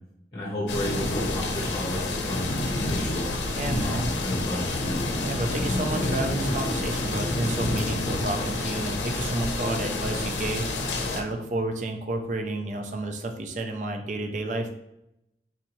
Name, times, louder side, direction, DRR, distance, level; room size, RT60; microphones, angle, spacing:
voice 1, 0.3-3.4 3.8-4.8, equal, 30° left, -4 dB, 0.8 m, -33 dB
sound 1, 0.7-11.2, left 2 dB, 90° left, 0.6 m, -28 dB
voice 2, 3.6-4.1 5.2-14.8, right 2 dB, 45° right, 5 dB, 0.4 m, -31 dB
4.2 x 2.7 x 2.9 m, 0.83 s
head